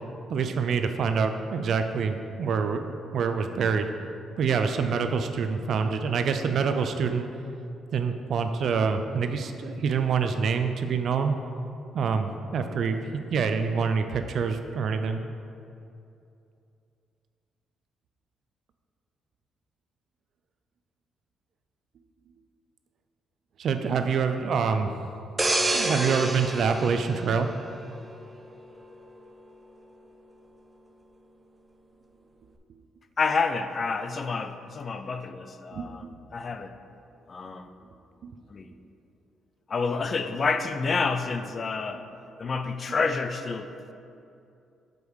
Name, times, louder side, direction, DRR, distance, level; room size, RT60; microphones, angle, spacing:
voice 1, 0.3-2.8 3.1-3.9 4.4-7.3 7.9-11.3 11.9-15.2 23.6-24.9 25.6-27.5 35.7-36.1 38.2-38.4, right 5 dB, 65° right, 7 dB, 0.5 m, -26 dB
sound 1, 25.4-28.1 28.5-28.7, right 2 dB, 20° right, 0.6 m, -28 dB
voice 2, 33.2-36.7 37.3-37.7 38.5-38.7 39.7-42.0 42.4-43.9, left 4 dB, 40° left, 9 dB, 0.4 m, -29 dB
5.3 x 4.8 x 6.3 m, 2.6 s
cardioid pair, 90°, 0 cm